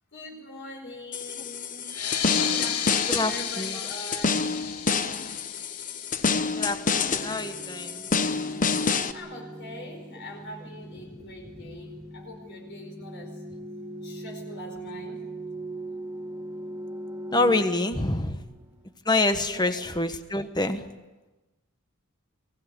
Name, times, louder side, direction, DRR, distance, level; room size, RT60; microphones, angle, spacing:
voice 1, 0.1-2.0 2.3-4.7 9.1-13.4 14.0-15.2 19.5-19.7, left 1 dB, 55° left, 1 dB, 4.8 m, -42 dB
sound 1, 1.1-9.1, left 4 dB, 35° left, 1.0 m, -28 dB
sound 2, 1.8-7.0, left 9 dB, 90° left, 1.7 m, -33 dB
voice 2, 3.1-3.8 6.6-8.1 17.3-18.4 19.0-20.9, left 2 dB, 20° left, 9 dB, 1.3 m, -26 dB
sound 3, 6.2-18.9, right 1 dB, 15° right, 1.3 m, -41 dB
23.5 x 17.5 x 9.8 m, 1.1 s
head